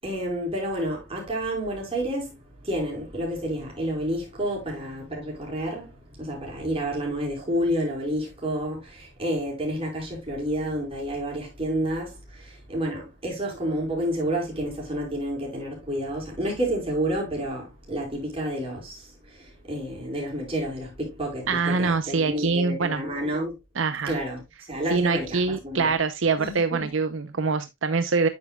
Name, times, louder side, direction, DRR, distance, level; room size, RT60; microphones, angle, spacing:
voice 1, 0.0-23.5 24.0-24.4 24.7-26.0 26.4-26.9, equal, 30° right, 4.6 m, -30 dB
voice 2, 21.5-23.0 23.8-24.2 24.9-28.3, right 4 dB, 80° right, 0.7 m, -24 dB
9.3 x 7.1 x 2.3 m
head